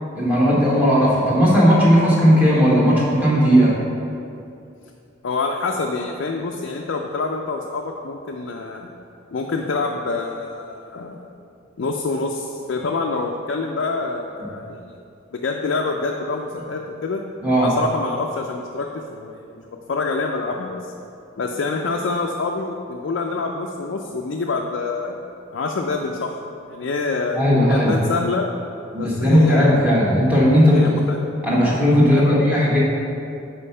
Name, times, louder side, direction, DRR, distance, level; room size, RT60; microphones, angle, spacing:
voice 1, 0.2-3.7 17.4-17.7 27.3-27.9 28.9-31.0 31.4-32.8, equal, 10° right, -6 dB, 1.1 m, -16 dB
voice 2, 5.2-8.9 9.3-11.2 11.8-15.0 15.3-17.2 17.6-20.9 21.4-25.2 25.5-26.3 26.7-27.4 27.7-28.5 29.0-29.9 30.7-31.2 32.1-32.4, left 3 dB, 60° left, 1 dB, 0.4 m, -26 dB
5.2 x 4.4 x 5.5 m, 2.6 s
head